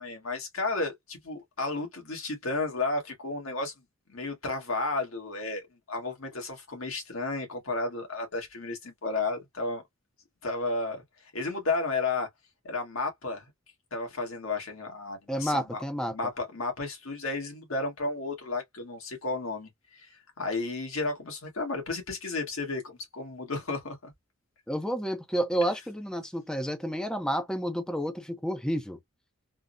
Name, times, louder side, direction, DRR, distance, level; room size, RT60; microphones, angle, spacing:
voice 1, 0.0-3.7 4.1-9.8 10.4-11.0 11.3-12.3 12.6-13.5 13.9-15.8 16.1-24.1, left 3 dB, 85° left, 1.4 m, -33 dB
voice 2, 15.3-16.1 24.7-29.0, equal, 5° left, 0.4 m, -30 dB
3.5 x 2.0 x 2.5 m
head